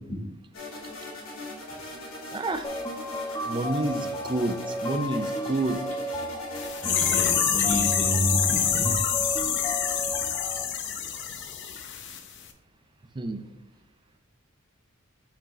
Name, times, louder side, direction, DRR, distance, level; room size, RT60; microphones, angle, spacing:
sound 1, 0.5-7.3, left 2 dB, 75° left, 2.4 m, -40 dB
voice 1, 2.3-2.7 3.5-5.8 13.1-13.4, right 2 dB, 25° right, 9 dB, 0.5 m, -29 dB
sound 2, 2.6-10.6, left 1 dB, 20° left, 1.0 m, -34 dB
sound 3, 6.5-12.2 12.4-12.5, left 8 dB, 60° left, 0.7 m, -26 dB
voice 2, 6.8-9.6, equal, ahead, -9 dB, 2.6 m, -30 dB
5.8 x 4.6 x 4.3 m, 0.83 s
head